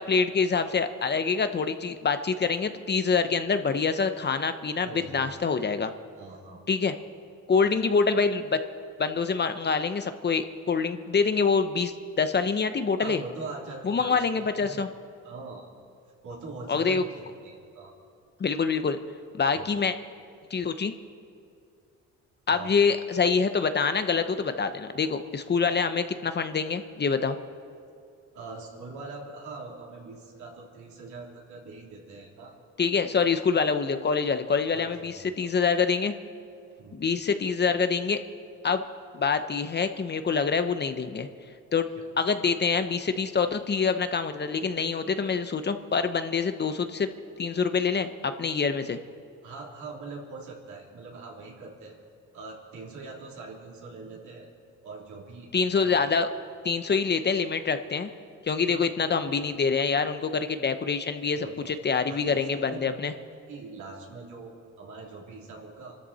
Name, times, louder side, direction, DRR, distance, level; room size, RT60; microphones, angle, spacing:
voice 1, 0.0-5.9 6.7-7.0 7.5-8.6 9.0-13.2 13.8-14.9 16.7-17.0 18.4-19.0 19.3-19.9 20.5-20.9 22.5-27.4 32.8-36.1 36.9-38.2 38.6-38.8 39.1-41.3 41.7-41.9 42.2-47.1 47.4-49.0 55.5-56.3 56.6-58.1 58.4-63.1, left 5 dB, 35° left, 9 dB, 0.9 m, -26 dB
voice 2, 4.8-5.4 6.2-6.6 7.5-7.7 13.0-14.8 15.2-15.7 16.0-17.9 19.5-19.7 22.5-22.7 28.3-32.5 34.7-35.5 36.8-37.0 41.9-42.1 49.4-52.0 52.3-54.5 54.8-55.9 58.7-59.3 61.3-61.8 62.1-63.1 63.5-66.0, right 3 dB, 75° right, -2 dB, 3.3 m, -43 dB
25.5 x 13.0 x 4.2 m, 2.4 s
cardioid pair, 90°, 30 cm